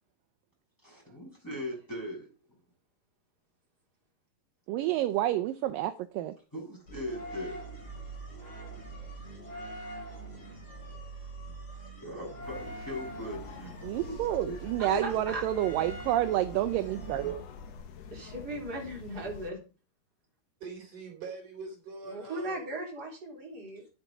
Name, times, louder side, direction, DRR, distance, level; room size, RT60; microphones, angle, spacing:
voice 1, 0.8-2.3 6.5-7.6 11.5-11.6 12.0-13.8 14.1-14.2 14.5-14.6 14.9-15.1, left 1 dB, 5° left, 6.6 m, -39 dB
voice 2, 4.7-6.3 13.8-17.4, right 13 dB, 75° right, 2.2 m, -29 dB
sound 1, 6.9-17.8, right 2 dB, 40° left, 6.3 m, -44 dB
sound 2, 12.4-19.5, left 6 dB, 75° left, 1.5 m, -47 dB
voice 3, 13.8-14.3 20.6-22.7, right 4 dB, 55° right, 4.9 m, -44 dB
voice 4, 14.8-15.4 18.1-19.6 22.1-23.9, right 1 dB, 25° right, 4.1 m, -38 dB
10.5 x 8.2 x 5.0 m
omnidirectional pair, 4.4 m